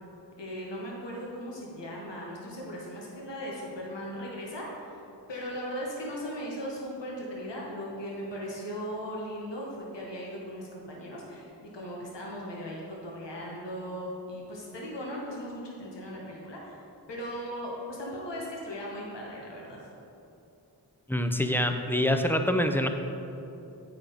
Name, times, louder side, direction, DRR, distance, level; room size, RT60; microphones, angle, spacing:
voice 1, 0.4-5.0 5.3-16.8 17.1-19.9, equal, 85° left, -3 dB, 1.2 m, -38 dB
voice 2, 21.1-22.9, left 1 dB, 5° left, 6 dB, 0.5 m, -25 dB
8.3 x 4.9 x 5.0 m, 2.8 s
cardioid pair, 40°, 42 cm